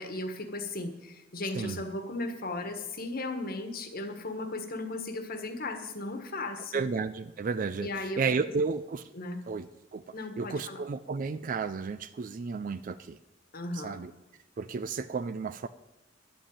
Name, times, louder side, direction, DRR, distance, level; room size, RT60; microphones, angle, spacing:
voice 1, 0.0-6.8 7.8-8.2 9.1-9.4 10.1-10.8 13.5-14.0, left 2 dB, 50° left, 7 dB, 1.4 m, -36 dB
voice 2, 6.7-9.0 9.5-13.2 13.7-14.1 14.6-15.7, right 4 dB, 45° right, 13 dB, 0.4 m, -33 dB
10.5 x 7.8 x 8.6 m, 1.0 s
head